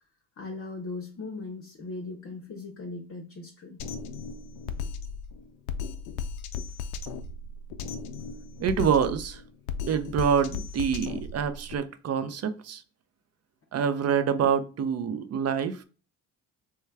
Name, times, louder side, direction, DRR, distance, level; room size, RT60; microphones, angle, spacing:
voice 1, 0.4-3.8, left 3 dB, 35° left, 0.7 m, -38 dB
Drum kit, 3.8-11.8, left 5 dB, 75° left, 0.5 m, -36 dB
voice 2, 8.6-9.4 9.9-12.8 13.7-15.8, right 7 dB, 40° right, 0.5 m, -26 dB
3.3 x 2.2 x 3.3 m
hypercardioid pair, 60°, 38 cm